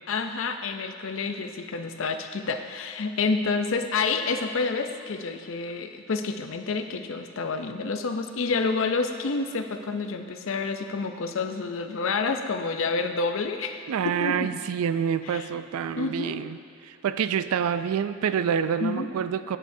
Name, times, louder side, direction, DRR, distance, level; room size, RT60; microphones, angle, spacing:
voice 1, 0.1-14.5 15.2-15.5 16.0-16.4 18.8-19.1, left 4 dB, 65° left, 7 dB, 0.5 m, -29 dB
voice 2, 13.9-16.6 16.9-19.6, right 7 dB, 85° right, 13 dB, 0.3 m, -27 dB
11.0 x 9.3 x 2.7 m, 2.5 s
head